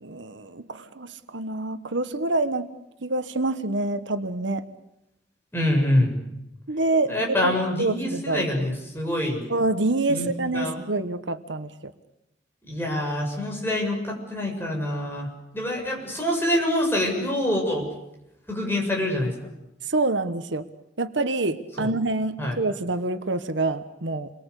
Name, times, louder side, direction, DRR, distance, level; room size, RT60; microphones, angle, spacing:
voice 1, 0.0-2.7 3.0-4.7 6.7-8.4 9.5-11.7 19.9-20.6 21.0-24.3, right 2 dB, 80° right, 11 dB, 1.4 m, -26 dB
voice 2, 5.5-6.2 7.1-9.5 10.1-10.8 12.7-17.9 18.5-19.3 21.8-21.9 22.4-22.6, left 1 dB, 10° left, 0 dB, 7.3 m, -26 dB
29.0 x 23.0 x 8.3 m, 0.87 s
head